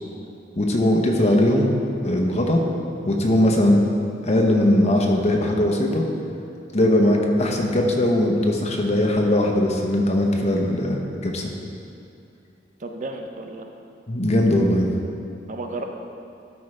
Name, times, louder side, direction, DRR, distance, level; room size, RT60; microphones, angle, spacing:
voice 1, 0.6-1.7 2.0-2.6 3.0-3.8 4.2-6.0 6.7-11.5 14.1-14.9, left 1 dB, 35° left, 1 dB, 0.8 m, -20 dB
voice 2, 12.8-13.6 15.5-15.8, right 2 dB, 45° right, 4 dB, 0.5 m, -33 dB
11.5 x 4.8 x 3.3 m, 2.5 s
head